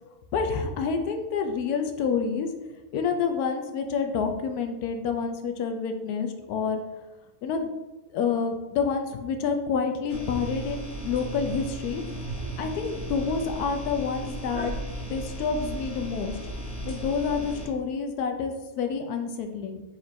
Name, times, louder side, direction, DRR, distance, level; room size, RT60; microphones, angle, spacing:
voice 1, 0.3-2.5 2.9-6.8 7.4-7.7 8.1-12.0 12.6-14.8 15.1-16.3 16.9-19.8, left 5 dB, 85° left, 5 dB, 1.1 m, -28 dB
sound 1, 10.1-17.7, right 1 dB, 45° left, 1.4 m, -36 dB
4.4 x 2.6 x 4.2 m, 1.1 s
omnidirectional pair, 1.6 m